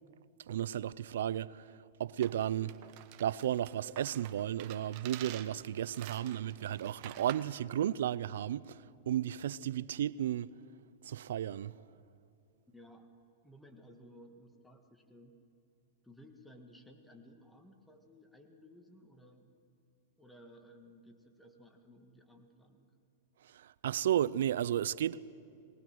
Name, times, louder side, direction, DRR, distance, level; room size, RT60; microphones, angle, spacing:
voice 1, 0.5-1.7 2.0-2.8 3.2-10.5 11.0-11.7 23.4-25.2, right 11 dB, 75° right, 0.5 m, -34 dB
sound 1, 2.2-7.6, right 13 dB, 50° right, 1.1 m, -49 dB
voice 2, 12.7-13.1 13.4-15.4 16.0-19.5 20.2-22.9, equal, 5° left, 1.9 m, -57 dB
22.0 x 18.5 x 6.2 m
hypercardioid pair, 130°, 0 cm